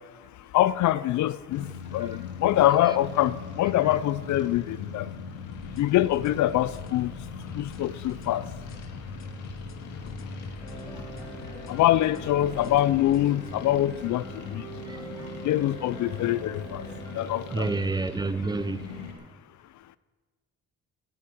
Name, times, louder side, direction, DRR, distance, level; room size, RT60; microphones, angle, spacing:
voice 1, 0.5-1.7 1.9-5.1 5.8-7.1 7.6-8.4 11.7-14.2 14.5-14.6 15.4-16.9 17.1-17.7, left 14 dB, 75° left, 0.5 m, -24 dB
sound 1, 1.5-19.1, left 4 dB, 90° left, 2.1 m, -40 dB
sound 2, 5.5-13.3, left 7 dB, 45° left, 1.0 m, -47 dB
sound 3, 10.6-17.9, right 4 dB, 5° left, 3.2 m, -43 dB
voice 2, 10.9-11.6 14.8-15.3 17.5-18.9, right 3 dB, 15° right, 0.7 m, -31 dB
17.5 x 8.5 x 5.9 m
cardioid pair, 90°, 30 cm